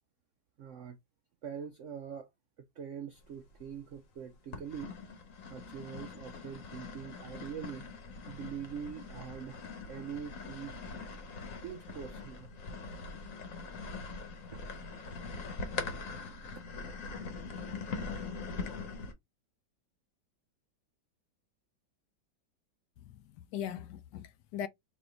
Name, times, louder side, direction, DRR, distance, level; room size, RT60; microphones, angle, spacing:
voice 1, 0.6-1.0 1.4-2.3 2.8-4.9 5.5-7.9 8.3-9.6 9.9-10.8 11.6-12.5 14.5-14.6 16.0-16.1, right 8 dB, 85° right, 0.6 m, -43 dB
sound 1, 3.3-4.0 4.5-19.1, left 4 dB, 55° left, 1.2 m, -42 dB
voice 2, 23.0-24.7, left 10 dB, 75° left, 1.1 m, -40 dB
4.2 x 2.8 x 3.8 m
omnidirectional pair, 1.9 m